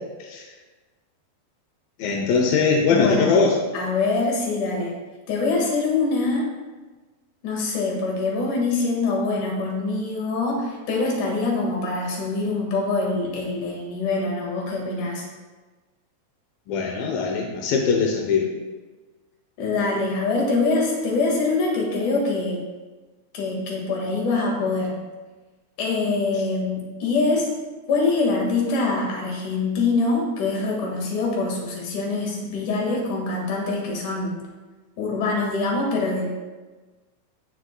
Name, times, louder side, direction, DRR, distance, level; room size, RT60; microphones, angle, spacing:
voice 1, 2.0-3.6 16.7-18.5, left 5 dB, 80° left, 1 dB, 2.0 m, -21 dB
voice 2, 2.9-3.4 3.7-4.9 5.3-6.5 7.4-15.3 19.6-22.6 23.3-24.9 25.8-27.5 27.9-34.4 35.0-36.3, left 3 dB, 55° left, -1 dB, 2.7 m, -24 dB
17.0 x 6.4 x 2.2 m, 1.3 s
omnidirectional pair, 5.2 m